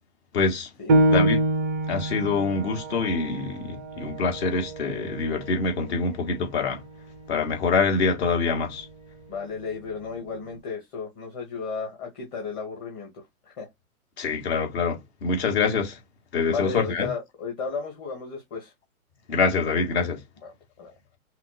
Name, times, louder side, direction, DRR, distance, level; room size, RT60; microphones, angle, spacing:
voice 1, 0.3-0.7 1.1-1.4 1.9-6.8 7.3-8.9 14.2-16.0 16.3-17.1 19.3-20.2, left 4 dB, 45° left, 1.7 m, -25 dB
Piano, 0.9-6.1 6.5-6.6 7.2-7.7, right 1 dB, 15° right, 0.4 m, -26 dB
voice 2, 9.3-13.2 13.6-13.7 16.5-18.7 20.4-20.9, left 5 dB, 20° left, 1.4 m, -34 dB
5.8 x 2.1 x 2.3 m
hypercardioid pair, 135°, 45 cm